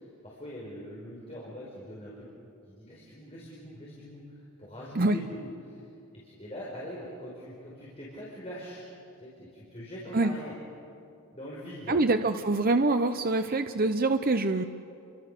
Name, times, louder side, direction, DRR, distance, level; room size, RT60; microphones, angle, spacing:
voice 1, 0.0-2.3 2.7-5.8 6.2-8.9 9.2-10.5 11.3-12.0, equal, 30° left, -5 dB, 4.7 m, -43 dB
voice 2, 11.9-14.6, right 2 dB, 40° right, 8 dB, 0.8 m, -25 dB
29.5 x 24.0 x 6.7 m, 2.7 s
head